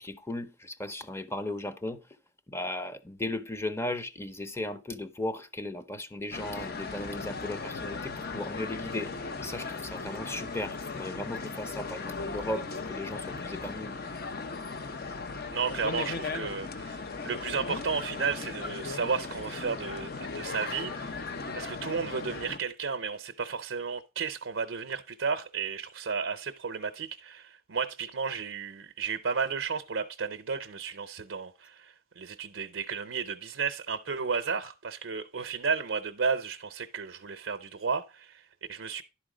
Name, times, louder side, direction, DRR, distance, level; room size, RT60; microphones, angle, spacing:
voice 1, 0.0-2.0 2.5-14.0, left 1 dB, 15° left, 0.7 m, -36 dB
sound 1, 6.3-22.6, left 4 dB, 50° left, 0.7 m, -37 dB
voice 2, 15.5-21.3 21.5-39.0, right 5 dB, 75° right, 0.6 m, -33 dB
11.0 x 4.4 x 4.9 m
head